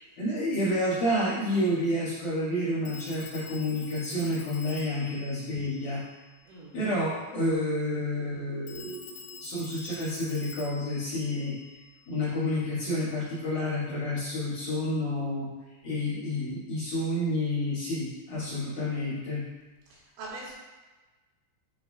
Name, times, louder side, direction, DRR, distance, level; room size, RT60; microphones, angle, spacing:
voice 1, 0.0-6.0 6.7-11.6 12.1-15.5 15.8-19.4, left 1 dB, 55° left, -11 dB, 2.6 m, -29 dB
Telephone, 0.6-0.7 2.9-6.6 8.7-12.4, left 5 dB, 85° left, 3.1 m, -47 dB
voice 2, 6.4-6.7 19.9-20.5, right 2 dB, 85° right, -6 dB, 3.9 m, -42 dB
11.0 x 3.7 x 2.4 m, 1.2 s
omnidirectional pair, 5.4 m